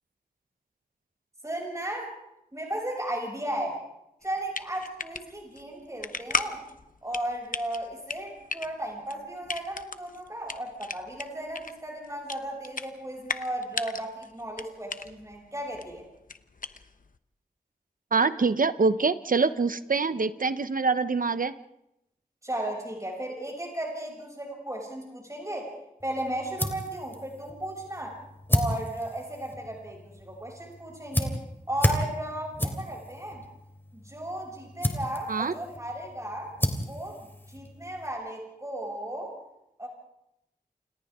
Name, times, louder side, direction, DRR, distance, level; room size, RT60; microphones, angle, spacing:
voice 1, 1.4-2.1 2.5-3.8 4.2-6.6 7.0-16.0 22.4-25.7 26.0-28.2 28.5-31.4 31.7-33.4 33.9-36.5 36.9-39.3 39.8-39.9, right 1 dB, 20° right, -1 dB, 7.2 m, -35 dB
sound 1, 4.2-17.2, left 4 dB, 60° left, 1.0 m, -37 dB
voice 2, 18.1-21.5 35.3-35.5, right 4 dB, 60° right, 12 dB, 0.9 m, -25 dB
sound 2, 26.0-38.1, left 1 dB, 15° left, 3.3 m, -33 dB
29.0 x 28.0 x 3.7 m, 0.84 s
wide cardioid pair, 80°, 16 cm